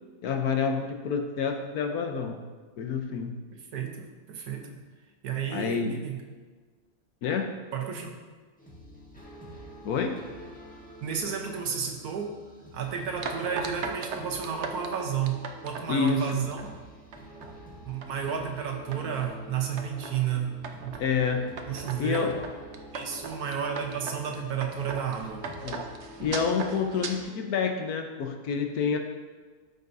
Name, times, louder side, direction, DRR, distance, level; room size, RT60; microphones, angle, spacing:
voice 1, 0.2-2.4 2.8-3.4 5.5-6.0 7.2-7.5 9.8-10.2 15.9-16.4 21.0-21.5 22.0-22.4 25.6-25.8 26.2-29.0, left 5 dB, 80° left, 5 dB, 1.3 m, -28 dB
voice 2, 3.5-4.8 5.2-6.2 7.7-8.1 11.0-12.4 12.7-15.4 15.6-16.7 17.8-20.5 20.8-21.0 21.7-22.3 22.9-25.5, right 7 dB, 80° right, 2 dB, 1.5 m, -32 dB
sound 1, 8.6-27.2, equal, 5° left, 1.2 m, -47 dB
sound 2, 13.2-16.7 17.1-17.5 17.9-18.4 18.9-19.4 19.8-20.2 20.6-21.1 21.6-27.1, right 5 dB, 60° right, 0.9 m, -38 dB
13.5 x 5.3 x 2.7 m, 1.4 s
omnidirectional pair, 1.6 m